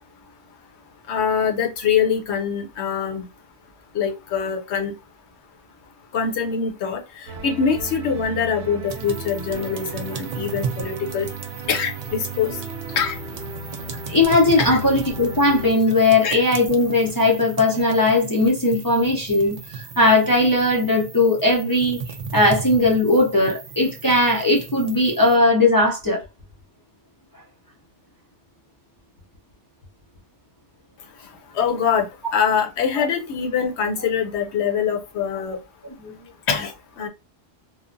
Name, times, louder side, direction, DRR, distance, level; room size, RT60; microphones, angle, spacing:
voice 1, 1.1-3.3 3.9-4.9 6.1-11.3 11.7-12.6 13.0-13.2 14.6-14.8 16.2-16.4 31.5-35.6 36.5-37.1, left 7 dB, 70° left, 0.9 m, -24 dB
sound 1, 7.3-15.7, right 3 dB, 70° right, 0.9 m, -35 dB
sound 2, 8.9-25.3, right 5 dB, 55° right, 0.4 m, -36 dB
voice 2, 14.1-22.0 22.3-26.2 33.0-33.1 36.0-36.1, left 2 dB, 30° left, 0.4 m, -18 dB
3.1 x 2.0 x 2.5 m
omnidirectional pair, 1.2 m